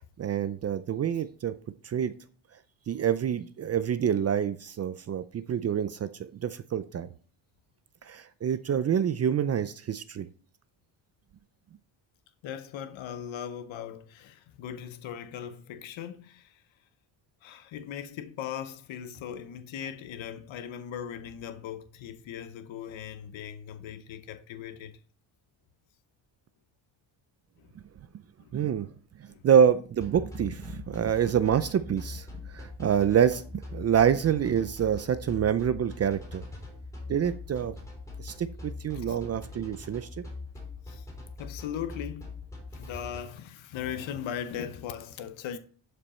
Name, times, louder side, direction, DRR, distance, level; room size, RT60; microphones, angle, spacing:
voice 1, 0.2-1.6 1.8-2.1 2.9-7.1 8.0-10.3 28.5-28.9 29.2-36.4 37.1-37.8 38.2-40.2, right 8 dB, 35° right, 0.4 m, -27 dB
voice 2, 12.4-16.6 17.4-25.0 27.6-27.7 28.4-28.5 29.3-29.4 38.9-39.2 40.9-41.1 41.4-42.4 42.7-45.6, left 9 dB, 75° left, 0.9 m, -39 dB
sound 1, 30.0-43.2, left 3 dB, 5° left, 3.4 m, -42 dB
12.0 x 5.2 x 4.3 m
cardioid pair, 165°, 46 cm